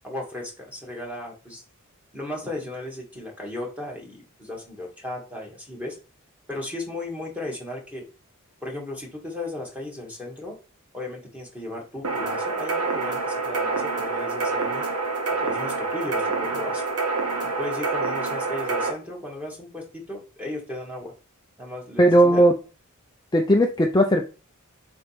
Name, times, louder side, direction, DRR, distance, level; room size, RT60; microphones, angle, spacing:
voice 1, 0.0-1.6 2.1-6.0 6.5-8.0 8.6-10.6 10.9-14.9 15.3-16.8 17.4-21.1 21.6-22.4, left 1 dB, 5° right, -2 dB, 2.2 m, -35 dB
sound 1, 12.0-18.9, right 3 dB, 90° right, 1.5 m, -27 dB
voice 2, 22.0-22.5 23.3-24.3, right 1 dB, 20° left, 2 dB, 0.6 m, -17 dB
7.7 x 4.4 x 3.5 m, 0.33 s
head